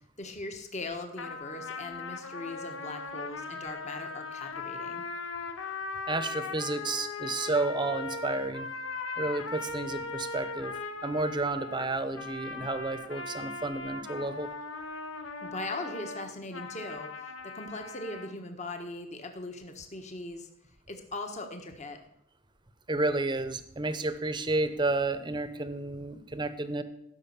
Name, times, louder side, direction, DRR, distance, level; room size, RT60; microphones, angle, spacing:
voice 1, 0.2-5.0 15.4-17.2 17.5-20.5 20.9-22.0, left 2 dB, 35° left, 5 dB, 1.3 m, -40 dB
sound 1, 1.2-18.3, left 3 dB, 65° left, 1.1 m, -39 dB
voice 2, 6.1-8.7 9.2-10.7 11.0-14.5 22.9-26.8, right 2 dB, 20° right, 11 dB, 0.8 m, -31 dB
15.0 x 6.3 x 7.1 m, 0.78 s
head